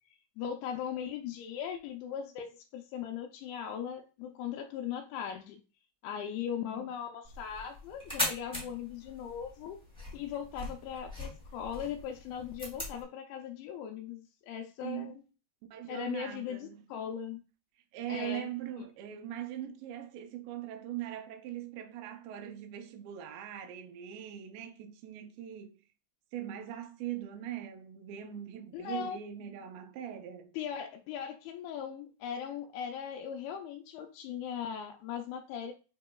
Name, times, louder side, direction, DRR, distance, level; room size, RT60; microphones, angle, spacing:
voice 1, 0.4-5.6 6.0-9.8 10.1-15.1 15.9-17.4 18.1-18.5 28.7-29.2 30.6-35.7, left 8 dB, 85° left, 2.5 m, -39 dB
sound 1, 7.2-13.0, left 1 dB, 5° left, 1.0 m, -40 dB
voice 2, 14.8-15.2 15.7-16.8 17.9-25.8 26.3-30.5, right 11 dB, 80° right, 2.4 m, -41 dB
7.3 x 2.9 x 2.2 m
omnidirectional pair, 4.4 m